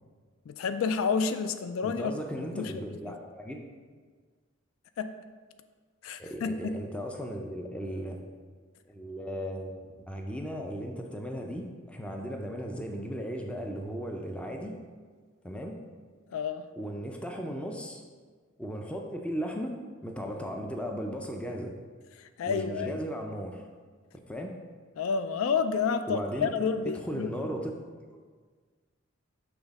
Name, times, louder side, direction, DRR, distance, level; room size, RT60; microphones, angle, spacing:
voice 1, 0.5-2.8 5.0-5.2 6.0-6.9 16.3-16.7 22.2-23.0 25.0-27.4, left 5 dB, 70° left, 11 dB, 0.3 m, -30 dB
voice 2, 1.8-3.7 6.2-8.2 8.9-9.8 10.1-14.8 15.4-15.8 16.8-18.0 18.6-21.7 22.4-23.7 24.3-24.5 26.1-26.5 26.9-27.7 28.1-28.2, equal, 5° left, 2 dB, 0.4 m, -36 dB
5.9 x 3.5 x 5.2 m, 1.5 s
head